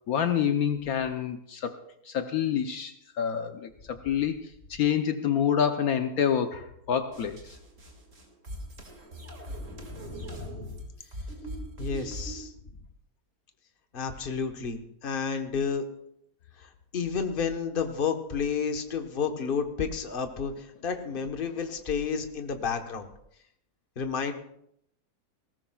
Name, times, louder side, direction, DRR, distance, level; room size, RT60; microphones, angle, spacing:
voice 1, 0.1-1.8 2.1-7.6, left 8 dB, 70° left, 7 dB, 1.2 m, -27 dB
sound 1, 7.1-12.5, right 1 dB, 50° right, 2.6 m, -41 dB
voice 2, 9.7-10.7 11.8-12.5 13.9-15.8 16.6-23.1 24.0-24.3, left 6 dB, 35° left, 6 dB, 1.2 m, -31 dB
20.0 x 18.0 x 2.3 m, 0.73 s
omnidirectional pair, 1.7 m